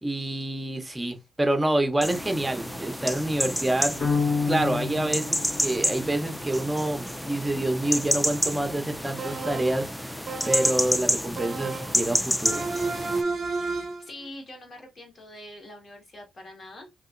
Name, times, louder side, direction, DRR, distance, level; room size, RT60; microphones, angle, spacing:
voice 1, 0.0-4.0 4.5-12.6, right 1 dB, 15° right, 0.8 m, -27 dB
sound 1, 2.0-13.2, equal, 5° left, 0.4 m, -29 dB
sound 2, 4.0-6.3, left 5 dB, 75° left, 1.6 m, -28 dB
sound 3, 9.2-9.8 10.3-10.9 11.4-12.0 12.5-14.1, right 3 dB, 55° right, 0.5 m, -31 dB
voice 2, 13.8-16.9, left 1 dB, 45° left, 1.6 m, -44 dB
3.0 x 2.6 x 2.5 m
supercardioid pair, 60°, 0 cm